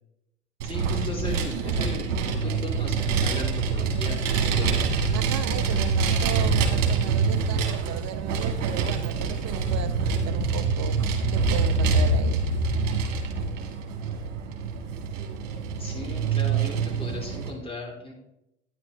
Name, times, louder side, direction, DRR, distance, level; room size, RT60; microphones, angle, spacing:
voice 1, 0.6-4.9 15.8-18.1, left 1 dB, 15° left, -2 dB, 3.6 m, -37 dB
Vehicle, 0.6-17.5, right 4 dB, 70° right, 1.9 m, -25 dB
voice 2, 5.1-12.4, right 10 dB, 45° right, 12 dB, 1.0 m, -36 dB
10.0 x 9.8 x 3.3 m, 0.85 s
hypercardioid pair, 80°, 37 cm